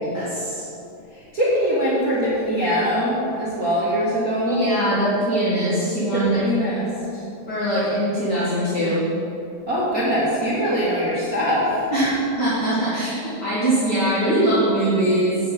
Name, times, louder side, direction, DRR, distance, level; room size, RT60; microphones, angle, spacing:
voice 1, 0.0-0.7 4.4-6.7 7.5-9.1 11.9-15.4, right 1 dB, 40° left, -9 dB, 1.7 m, -22 dB
voice 2, 1.1-4.6 6.1-7.2 9.7-11.8, equal, 35° right, -9 dB, 1.4 m, -22 dB
8.5 x 6.6 x 8.3 m, 2.8 s
omnidirectional pair, 4.2 m